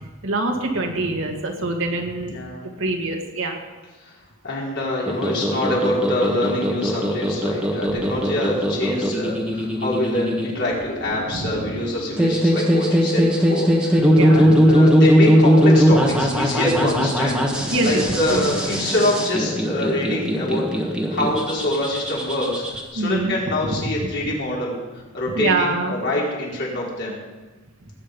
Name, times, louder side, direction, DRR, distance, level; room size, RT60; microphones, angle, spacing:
voice 1, 0.0-2.4 2.8-3.6 7.9-8.1 11.1-11.8 14.1-14.6 17.6-18.5 23.0-23.3 23.6-24.0 25.3-26.0, right 2 dB, 65° right, 2 dB, 2.2 m, -25 dB
voice 2, 2.2-2.6 4.4-17.4 17.8-22.6 22.9-24.8 25.1-27.2, left 1 dB, 55° left, -4 dB, 4.8 m, -25 dB
sound 1, 5.1-22.8, equal, 5° right, 1.7 m, -20 dB
19.0 x 9.5 x 5.4 m, 1.3 s
head